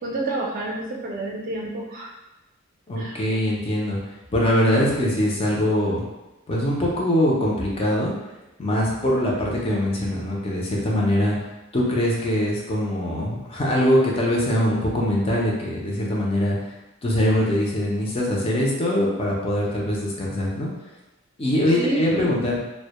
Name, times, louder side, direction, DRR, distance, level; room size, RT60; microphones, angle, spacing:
voice 1, 0.0-2.1 3.0-3.2 21.8-22.3, right 1 dB, 40° right, -2 dB, 0.4 m, -28 dB
voice 2, 2.9-4.0 4.3-6.0 6.5-8.1 8.6-11.4 11.7-16.6 17.0-20.7 21.4-22.6, left 1 dB, 25° left, -3 dB, 0.4 m, -22 dB
2.1 x 2.1 x 2.9 m, 0.99 s
head